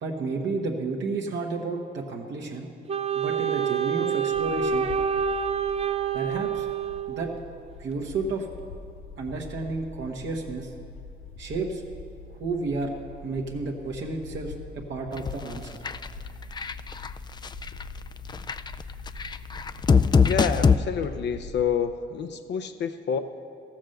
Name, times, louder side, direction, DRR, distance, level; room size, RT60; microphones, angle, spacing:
voice 1, 0.0-2.7 3.1-4.9 6.1-6.7 7.1-7.3 7.8-8.5 9.2-10.7 11.4-11.8 12.3-12.9 13.2-15.8, right 3 dB, 65° right, 0 dB, 1.2 m, -31 dB
Wind instrument woodwind instrument, 2.9-7.5, right 7 dB, 30° right, 0.5 m, -27 dB
sound 1, 4.3-21.6, left 3 dB, 80° left, 1.8 m, -44 dB
sound 2, 15.2-15.6 15.8-16.1 16.6-17.1 17.4-17.8 18.3-20.8, left 5 dB, 20° left, 0.3 m, -21 dB
voice 2, 20.2-23.2, left 7 dB, 60° left, 7 dB, 0.6 m, -28 dB
14.0 x 7.2 x 6.5 m, 2.4 s
cardioid pair, 90°, 20 cm